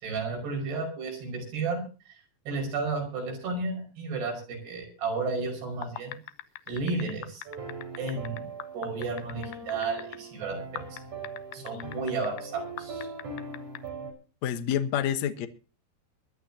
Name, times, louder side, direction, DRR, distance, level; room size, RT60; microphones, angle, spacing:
voice 1, 0.0-1.8 2.1-2.2 2.5-6.2 6.7-7.4 8.0-8.5 8.7-11.0 11.5-13.1, right 3 dB, 85° right, 3 dB, 7.6 m, -32 dB
sound 1, 5.7-10.2 10.8-12.4 12.8-13.8, left 14 dB, 75° left, 2.7 m, -41 dB
sound 2, 7.5-14.1, right 4 dB, 45° right, 6.0 m, -40 dB
voice 2, 14.4-15.5, left 9 dB, 60° left, 9 dB, 2.0 m, -28 dB
23.0 x 12.5 x 2.8 m, 0.35 s
omnidirectional pair, 4.6 m